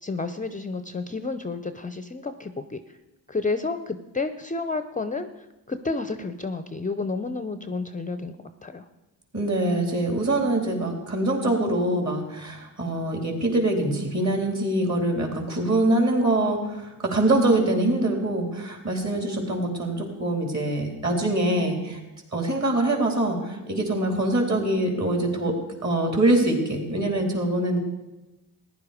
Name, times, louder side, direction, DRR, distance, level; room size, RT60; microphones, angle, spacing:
voice 1, 0.0-2.8 3.3-5.3 5.7-8.8, left 3 dB, 20° left, 10 dB, 0.6 m, -30 dB
voice 2, 9.3-22.0 22.3-25.6 25.8-27.8, right 1 dB, 40° right, 2 dB, 3.7 m, -24 dB
15.0 x 10.5 x 5.0 m, 1.0 s
cardioid pair, 70°, 42 cm